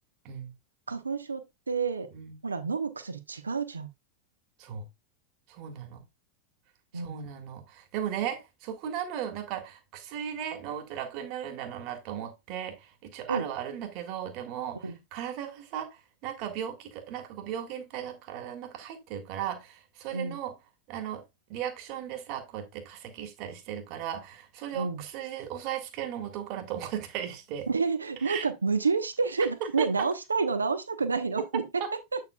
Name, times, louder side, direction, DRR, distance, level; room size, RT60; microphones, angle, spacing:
voice 1, 0.9-2.1 2.4-3.9 6.9-7.2 13.3-13.5 14.8-15.0 20.1-20.4 24.7-25.0 27.7-31.8 32.1-32.2, right 4 dB, 75° right, 1.0 m, -29 dB
voice 2, 5.5-6.0 6.9-20.5 20.9-21.2 21.5-27.7 28.2-28.5 29.6-29.9 31.8-31.9, right 9 dB, 40° right, 1.7 m, -36 dB
8.2 x 6.7 x 2.3 m
figure-of-eight pair, 90°, 0 cm